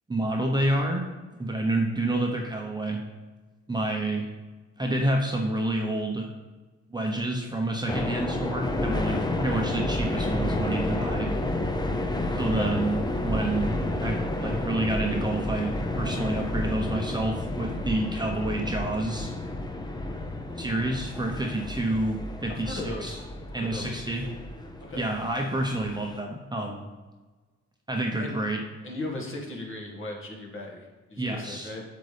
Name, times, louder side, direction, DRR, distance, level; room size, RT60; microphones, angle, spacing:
voice 1, 0.1-1.1 1.4-3.0 3.7-4.3 4.8-6.3 6.9-11.3 12.3-19.3 20.6-23.2 23.5-24.3 25.0-26.9 27.9-28.6 31.2-31.7, right 1 dB, 15° right, 1 dB, 0.9 m, -28 dB
sound 1, 7.9-26.2, left 1 dB, 15° left, 0.7 m, -30 dB
voice 2, 22.5-23.2 23.5-24.0 24.8-25.0 28.2-28.4 28.8-31.8, left 2 dB, 40° left, 0 dB, 1.9 m, -37 dB
7.9 x 6.8 x 3.4 m, 1.3 s
cardioid pair, 90°, 30 cm